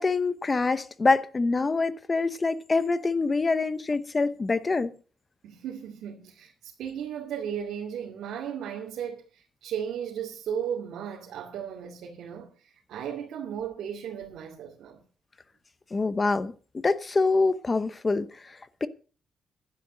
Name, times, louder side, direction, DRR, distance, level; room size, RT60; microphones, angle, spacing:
voice 1, 0.0-4.9 15.9-18.3 18.8-18.9, left 3 dB, 25° left, 0.9 m, -25 dB
voice 2, 5.4-15.0, right 8 dB, 85° right, 2.5 m, -35 dB
11.5 x 10.0 x 6.3 m
cardioid pair, 140°, 0 cm